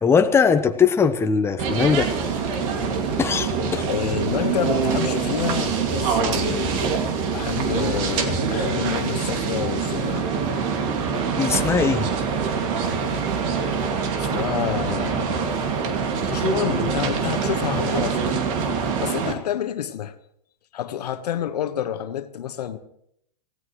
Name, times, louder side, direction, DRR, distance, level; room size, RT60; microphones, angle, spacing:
voice 1, 0.0-2.1 3.2-3.9 11.4-12.1, left 6 dB, 10° left, 1.0 m, -20 dB
nyc esb observatory, 1.6-19.3, right 5 dB, 55° right, 2.4 m, -24 dB
voice 2, 3.9-6.8 7.3-10.3 14.2-15.6 16.3-20.1 20.7-22.8, left 10 dB, 70° left, 1.4 m, -29 dB
26.5 x 16.5 x 3.2 m
hypercardioid pair, 115°, 21 cm